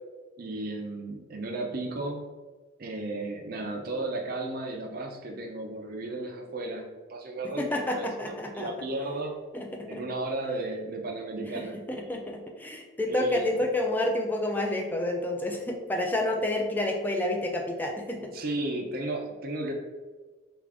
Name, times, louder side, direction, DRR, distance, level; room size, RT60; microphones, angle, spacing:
voice 1, 0.4-2.3 2.8-6.8 7.1-9.3 9.9-11.8 13.1-13.6 18.2-19.7, right 2 dB, 50° right, 2 dB, 0.5 m, -34 dB
voice 2, 7.6-8.7 9.5-10.0 11.5-18.3, left 1 dB, 10° left, 2 dB, 0.4 m, -29 dB
3.6 x 2.4 x 3.4 m, 1.3 s
head